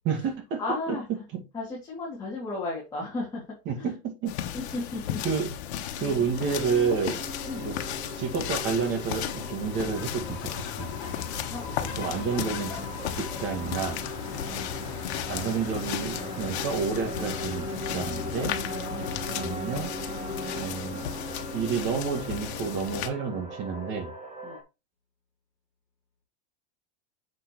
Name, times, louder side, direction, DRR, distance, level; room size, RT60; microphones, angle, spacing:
voice 1, 0.1-0.6 0.9-1.4 3.7-4.3 5.2-5.5 6.0-7.2 7.6-7.9 8.2-10.5 10.8-10.9 12.0-12.8 13.2-14.0 15.3-17.7 17.9-18.6 19.4-19.9 20.6-21.1 21.5-24.1, right 6 dB, 35° right, 5 dB, 2.2 m, -30 dB
voice 2, 0.6-1.0 1.5-3.4 4.5-5.2 6.0-6.3 7.5-7.7 11.5-11.6 11.9-12.1 14.3-14.7 18.9-19.1 24.4-24.6, left 2 dB, 10° left, -6 dB, 2.8 m, -34 dB
sound 1, 4.3-23.1, left 10 dB, 70° left, 1.4 m, -35 dB
sound 2, 6.3-24.6, equal, 20° right, 1.8 m, -39 dB
sound 3, 10.0-19.6, left 6 dB, 45° left, 4.3 m, -41 dB
7.5 x 6.5 x 3.2 m, 0.26 s
supercardioid pair, 160°, 33 cm